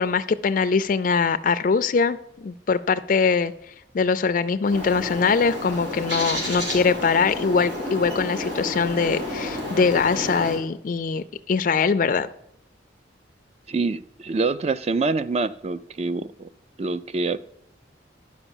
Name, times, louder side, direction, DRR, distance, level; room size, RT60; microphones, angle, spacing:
voice 1, 0.0-3.5 3.9-12.3, left 5 dB, 45° left, 10 dB, 0.4 m, -22 dB
Bird, 4.6-10.6, left 1 dB, 80° right, 3.9 m, -31 dB
voice 2, 13.7-16.5 16.8-17.4, right 3 dB, 35° right, 15 dB, 0.3 m, -25 dB
11.0 x 5.2 x 7.1 m, 0.72 s
head